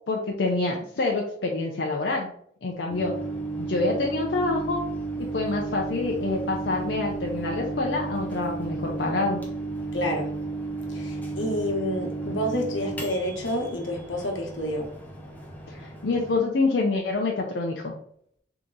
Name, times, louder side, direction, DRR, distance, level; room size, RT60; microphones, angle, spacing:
voice 1, 0.1-2.3 2.6-3.1 3.6-4.8 5.3-9.4 15.7-17.9, left 3 dB, 65° left, 0.5 m, -27 dB
Microwave oven, 2.9-16.4, right 3 dB, 10° left, 0.6 m, -33 dB
voice 2, 9.9-10.3 10.9-14.9, equal, 90° left, 1.1 m, -29 dB
3.6 x 2.9 x 3.8 m
head